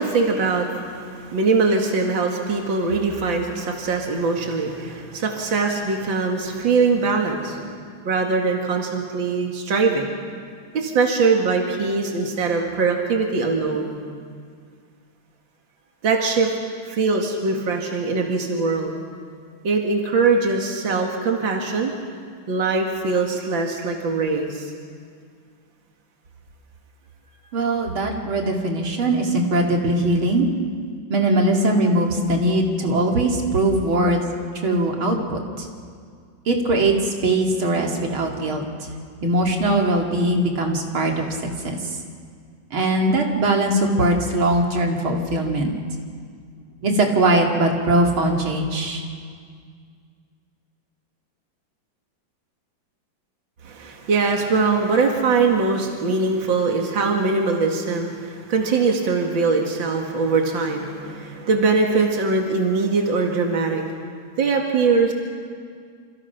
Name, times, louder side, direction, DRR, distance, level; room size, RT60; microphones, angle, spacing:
voice 1, 0.0-7.7 8.0-10.1 10.7-14.0 16.0-16.5 16.9-18.9 19.6-21.9 22.5-24.7 53.6-63.8 64.4-65.1, right 4 dB, 70° right, 1 dB, 2.7 m, -22 dB
voice 2, 27.5-30.5 31.1-34.2 34.6-35.7 36.5-38.6 39.2-41.3 41.6-41.8 42.7-45.7 46.8-49.0, right 1 dB, 85° right, 1 dB, 3.4 m, -20 dB
28.0 x 27.0 x 5.9 m, 2.1 s
omnidirectional pair, 2.2 m